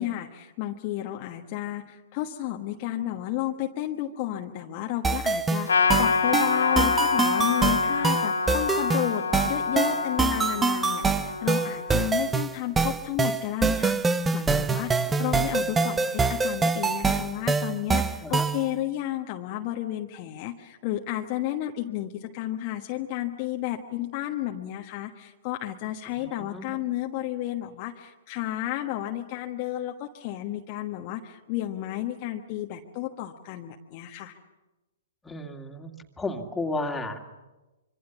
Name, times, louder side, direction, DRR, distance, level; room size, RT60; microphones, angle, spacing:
voice 1, 0.0-34.4, left 13 dB, 40° left, 3 dB, 1.3 m, -32 dB
sound 1, 5.0-18.7, right 4 dB, 10° right, 0.8 m, -25 dB
Trumpet, 5.7-12.4, left 4 dB, 75° left, 2.4 m, -27 dB
voice 2, 15.0-15.3 15.6-16.0 18.2-18.5 26.1-26.7 35.2-35.9 36.2-37.2, left 2 dB, 10° left, 2 dB, 2.5 m, -34 dB
26.0 x 24.5 x 7.2 m, 1.1 s
figure-of-eight pair, 115°, 0 cm